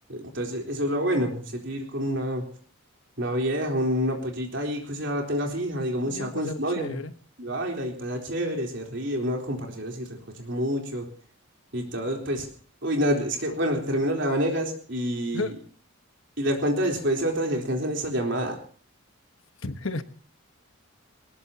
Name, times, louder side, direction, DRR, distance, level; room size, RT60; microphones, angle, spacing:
voice 1, 0.1-2.4 3.2-7.0 7.4-10.1 10.3-11.1 11.7-12.5 12.8-15.5 16.4-18.6, equal, 55° right, 2 dB, 3.9 m, -27 dB
voice 2, 6.0-7.1 15.3-15.6 19.6-20.0, left 3 dB, 65° left, 9 dB, 1.2 m, -32 dB
21.5 x 19.5 x 2.9 m, 0.43 s
head